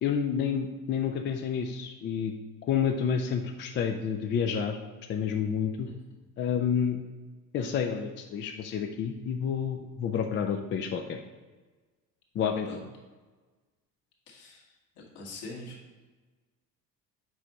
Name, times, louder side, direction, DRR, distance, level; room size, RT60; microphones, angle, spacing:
voice 1, 0.0-2.3 2.6-4.8 5.1-5.9 6.4-7.0 7.5-11.2 12.3-12.8, left 7 dB, 25° left, 4 dB, 0.4 m, -29 dB
voice 2, 14.3-14.6 15.2-15.8, left 2 dB, 60° left, -2 dB, 1.8 m, -42 dB
7.4 x 5.2 x 2.9 m, 1.3 s
figure-of-eight pair, 55°, 47 cm